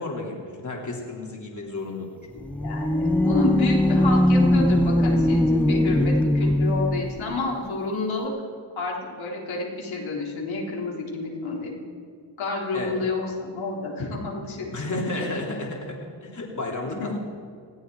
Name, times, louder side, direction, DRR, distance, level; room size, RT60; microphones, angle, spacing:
voice 1, 0.0-2.1 5.8-6.1 12.7-13.0 14.7-17.2, left 2 dB, 40° left, -1 dB, 3.3 m, -32 dB
voice 2, 2.4-8.3 8.8-11.8 12.4-15.5 17.0-17.1, left 3 dB, 80° left, -3 dB, 4.0 m, -30 dB
sound 1, 2.4-7.2, left 1 dB, 5° left, 0.5 m, -20 dB
19.5 x 14.5 x 4.8 m, 2.2 s
cardioid pair, 70°, 46 cm